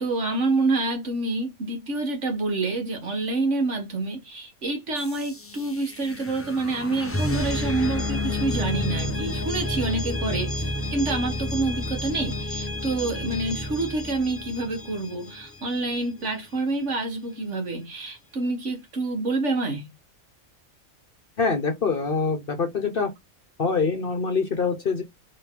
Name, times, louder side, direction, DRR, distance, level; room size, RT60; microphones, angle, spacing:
voice 1, 0.0-19.9, right 2 dB, 65° right, 1.7 m, -27 dB
sound 1, 5.0-15.8, left 1 dB, 20° left, 0.3 m, -30 dB
voice 2, 21.4-23.1 23.6-25.0, left 4 dB, 50° left, 1.0 m, -24 dB
3.7 x 3.1 x 4.5 m
omnidirectional pair, 1.4 m